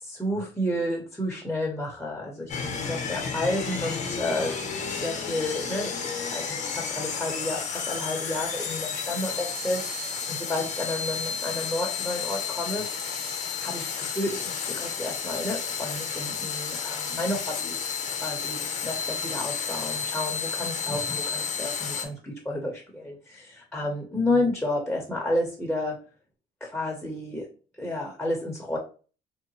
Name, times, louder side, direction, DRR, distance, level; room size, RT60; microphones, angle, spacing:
voice 1, 0.0-12.9 13.6-17.9 18.2-26.0 26.6-27.5 27.8-28.8, left 1 dB, 5° left, -1 dB, 0.8 m, -31 dB
sound 1, 2.5-22.0, left 6 dB, 45° left, 0.7 m, -32 dB
3.7 x 2.1 x 2.9 m, 0.37 s
cardioid pair, 110°, 17 cm